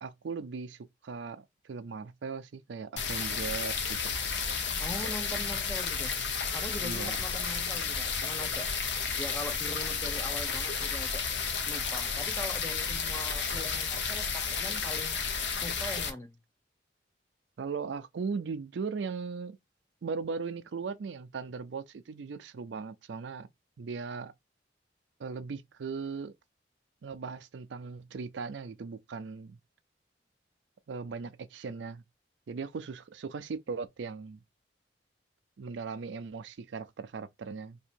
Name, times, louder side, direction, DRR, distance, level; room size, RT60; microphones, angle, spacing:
voice 1, 0.0-4.2 6.8-7.2 17.6-19.6 20.0-23.5 23.8-24.3 25.2-26.3 27.0-29.6 30.9-32.0 32.5-34.4 35.6-37.8, right 5 dB, 80° right, 0.4 m, -38 dB
sound 1, 3.0-16.1, left 5 dB, 80° left, 0.9 m, -32 dB
voice 2, 4.7-6.1 6.5-8.7 9.2-11.2 11.7-15.2 15.5-16.3, left 1 dB, 15° left, 0.9 m, -41 dB
2.8 x 2.7 x 4.4 m
head